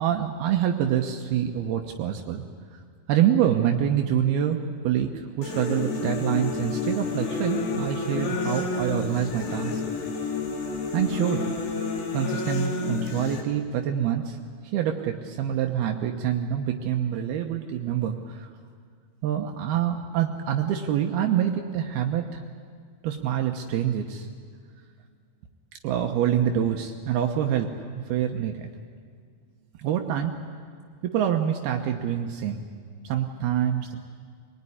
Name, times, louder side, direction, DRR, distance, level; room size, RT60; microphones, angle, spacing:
voice 1, 0.0-2.4 3.1-9.8 10.9-11.4 12.1-14.4 14.7-18.5 19.2-22.4 23.0-24.3 25.8-27.7 28.0-28.7 29.8-30.4 31.0-32.6 33.0-34.1, right 9 dB, 75° right, 3 dB, 2.9 m, -26 dB
sound 1, 5.4-13.4, left 4 dB, 85° left, 4.7 m, -30 dB
24.5 x 20.0 x 10.0 m, 2.1 s
omnidirectional pair, 4.6 m